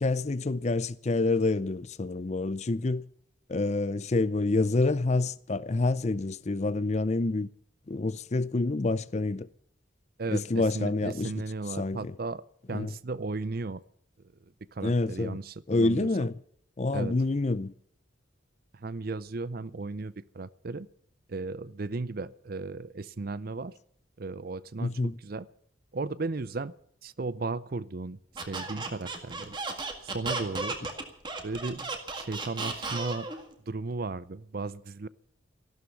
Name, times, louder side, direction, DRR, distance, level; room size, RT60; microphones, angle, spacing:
voice 1, 0.0-3.0 3.5-7.5 7.9-9.5 10.3-11.3 11.8-12.1 12.7-12.9 14.8-15.4 15.7-16.3 16.8-17.7 24.8-25.2, left 2 dB, 35° left, 0.5 m, -27 dB
voice 2, 10.2-12.4 12.7-13.8 14.7-16.3 16.9-17.2 18.7-20.9 21.3-23.7 24.2-25.5 25.9-26.7 27.0-29.6 30.0-30.8 31.4-33.3 33.7-35.1, right 3 dB, 45° right, 0.5 m, -35 dB
Squeak, 28.4-33.4, right 3 dB, 25° right, 1.9 m, -34 dB
15.0 x 12.5 x 6.9 m
head